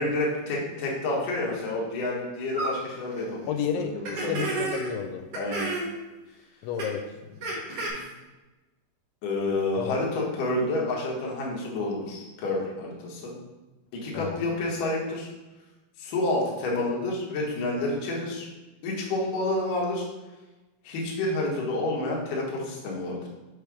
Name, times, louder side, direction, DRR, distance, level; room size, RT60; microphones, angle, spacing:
voice 1, 0.0-3.6 3.9-4.5 5.3-5.7 7.7-8.1 9.2-13.3 13.9-15.3 16.0-18.5 18.8-20.0 20.8-23.3, left 2 dB, 65° left, -3 dB, 2.3 m, -29 dB
sound 1, 2.5-2.7 3.1-3.2 4.0-4.9 5.3-5.9 6.8-6.9 7.4-7.9, right 3 dB, 85° right, 1.3 m, -31 dB
voice 2, 3.5-5.2 6.6-7.5 9.8-10.0 14.1-14.4, left 7 dB, 90° left, 6 dB, 2.9 m, -32 dB
6.8 x 3.4 x 4.7 m, 1.1 s
omnidirectional pair, 5.2 m